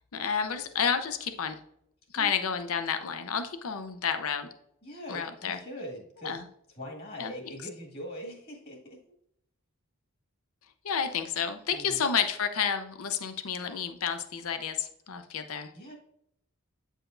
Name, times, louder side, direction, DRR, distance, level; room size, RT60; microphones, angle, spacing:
voice 1, 0.1-1.6 2.1-4.5 5.1-5.6 6.2-6.4 7.2-7.3 10.8-15.7, left 7 dB, 70° left, 8 dB, 0.6 m, -30 dB
voice 2, 4.8-6.4 6.7-9.0 11.7-12.1 15.7-16.0, equal, 45° left, -1 dB, 1.8 m, -42 dB
8.6 x 5.0 x 2.5 m, 0.74 s
head